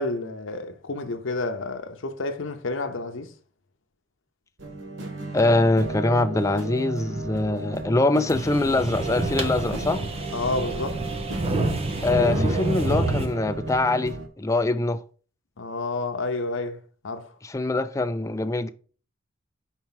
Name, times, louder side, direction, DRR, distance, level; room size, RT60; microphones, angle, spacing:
voice 1, 0.0-3.3 10.3-11.0 15.6-16.8 17.0-17.3, left 2 dB, 80° left, 0.8 m, -30 dB
sound 1, 4.6-14.3, right 2 dB, 70° right, 1.4 m, -34 dB
voice 2, 5.3-10.0 12.0-15.0 17.4-18.7, left 2 dB, 15° left, 0.4 m, -23 dB
sound 2, 8.3-13.3, right 2 dB, 30° right, 0.7 m, -28 dB
4.5 x 4.5 x 5.7 m
head